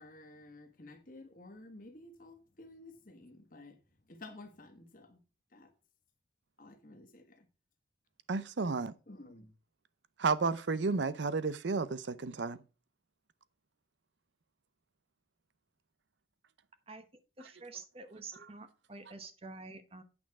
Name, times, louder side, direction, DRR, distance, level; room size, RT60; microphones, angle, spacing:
voice 1, 0.0-3.8 4.1-5.2 5.5-5.7 6.6-7.4 9.1-9.5, left 2 dB, 45° left, 1.4 m, -52 dB
voice 2, 8.3-8.9 10.2-12.6, right 4 dB, 70° right, 0.6 m, -32 dB
voice 3, 17.4-20.0, right 3 dB, 30° right, 1.0 m, -48 dB
8.8 x 6.1 x 4.7 m
head